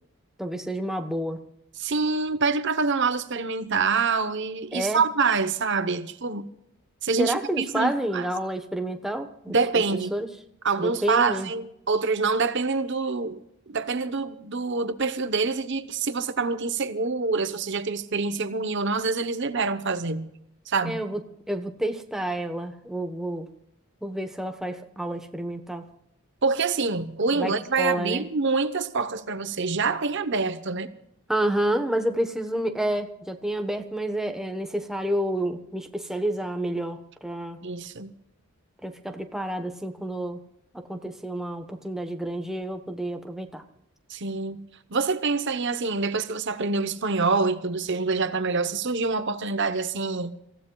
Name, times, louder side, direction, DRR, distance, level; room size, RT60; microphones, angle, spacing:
voice 1, 0.4-1.4 4.7-5.0 7.2-9.5 10.1-10.3 10.8-11.5 20.8-21.2 21.5-23.5 24.0-25.9 27.3-28.2 31.3-37.6 38.8-40.4 40.7-43.6, right 1 dB, ahead, 1.0 m, -29 dB
voice 2, 1.8-6.5 7.0-8.2 9.5-10.1 10.6-13.4 13.7-20.3 20.7-21.0 26.4-30.9 37.6-38.1 44.1-50.4, right 4 dB, 55° right, 0.9 m, -26 dB
27.5 x 15.5 x 2.3 m
head